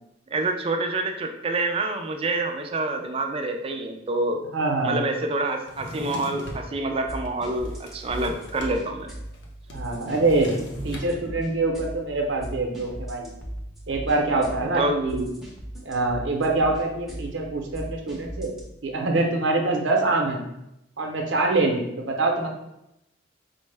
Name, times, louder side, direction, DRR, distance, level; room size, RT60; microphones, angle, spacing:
voice 1, 0.3-4.4 4.8-9.1 14.6-15.0, right 2 dB, 30° right, 4 dB, 0.4 m, -27 dB
voice 2, 4.5-5.0 9.7-10.6 10.8-13.3 13.9-15.3 15.8-18.5 18.8-20.4 21.0-22.5, right 2 dB, 90° right, 2 dB, 0.7 m, -24 dB
Drawer open or close, 5.6-6.7 7.3-8.8 9.0-9.1 9.3-11.1, equal, 75° left, 0.7 m, -38 dB
sound 1, 6.4-18.6, equal, ahead, 0.7 m, -39 dB
4.4 x 2.1 x 3.3 m, 0.85 s
head